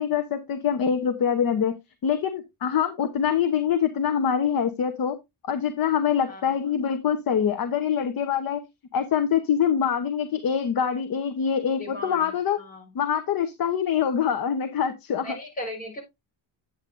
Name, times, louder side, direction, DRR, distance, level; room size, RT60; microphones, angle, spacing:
voice 1, 0.0-1.7 2.0-5.2 5.5-8.6 8.9-12.6 12.9-15.4, left 8 dB, 45° left, 0.9 m, -24 dB
voice 2, 11.8-12.3 12.6-12.8 15.2-16.0, left 1 dB, 15° left, 4.4 m, -36 dB
9.0 x 8.4 x 2.5 m
cardioid pair, 145°, 49 cm